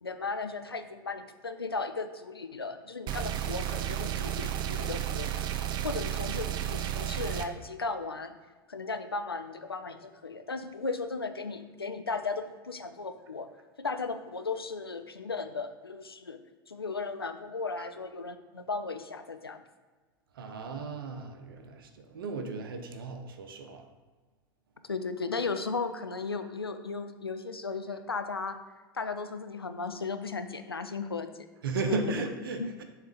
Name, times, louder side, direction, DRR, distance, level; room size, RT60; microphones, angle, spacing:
voice 1, 0.0-5.3 5.8-8.4 8.7-13.5 13.8-16.4 16.7-19.6 24.8-28.6 28.9-31.5 31.8-32.3 32.6-32.7, left 4 dB, 90° left, 9 dB, 0.4 m, -36 dB
sound 1, 3.1-7.5, right 11 dB, 35° right, 0.5 m, -32 dB
voice 2, 20.4-21.9 22.1-23.8 31.6-32.8, right 4 dB, 70° right, 6 dB, 0.7 m, -35 dB
7.1 x 3.3 x 4.9 m, 1.3 s
figure-of-eight pair, 80°, 12 cm